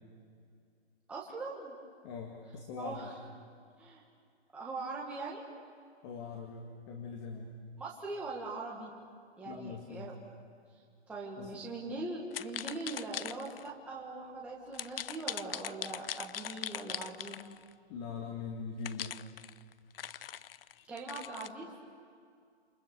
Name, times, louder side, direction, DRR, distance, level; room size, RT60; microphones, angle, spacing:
voice 1, 1.1-1.8 2.8-3.1 3.8-4.0 4.5-5.4 7.8-8.9 9.4-10.1 11.1-17.4 20.9-21.7, right 3 dB, 5° right, -5 dB, 1.6 m, -41 dB
voice 2, 2.0-3.1 6.0-7.5 9.5-10.1 11.4-11.6 17.9-19.1, left 5 dB, 25° left, 2 dB, 2.0 m, -42 dB
sound 1, 12.3-13.7 14.7-17.7 18.8-21.5, left 10 dB, 55° left, 0.7 m, -41 dB
28.5 x 28.0 x 6.9 m, 2.2 s
hypercardioid pair, 160°, 34 cm